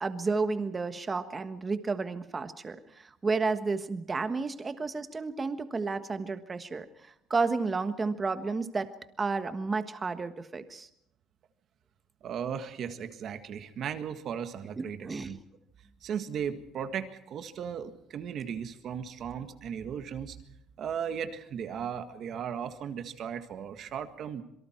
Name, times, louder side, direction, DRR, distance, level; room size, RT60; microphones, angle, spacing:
voice 1, 0.0-8.9 9.2-10.9 14.8-15.3, right 4 dB, 20° right, 9 dB, 1.4 m, -32 dB
voice 2, 12.2-15.4 16.0-20.4 20.8-24.4, right 8 dB, 45° right, 8 dB, 1.7 m, -36 dB
26.5 x 23.5 x 4.6 m, 0.79 s
cardioid pair, 165°, 0 cm